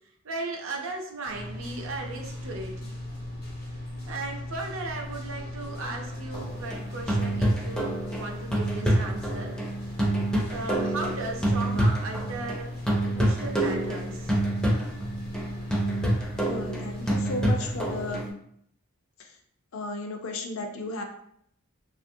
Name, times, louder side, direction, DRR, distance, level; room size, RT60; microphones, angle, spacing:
voice 1, 0.2-2.9 4.1-9.5 10.5-12.7 13.0-14.4, right 2 dB, 60° right, 1 dB, 0.5 m, -36 dB
sound 1, 1.3-18.2, left 1 dB, 80° left, 0.9 m, -38 dB
sound 2, 6.3-12.6 12.9-18.3, right 1 dB, 5° left, 0.4 m, -27 dB
voice 2, 16.5-18.2 19.7-21.0, left 2 dB, 65° left, 3 dB, 0.4 m, -34 dB
2.7 x 2.5 x 2.6 m, 0.70 s
head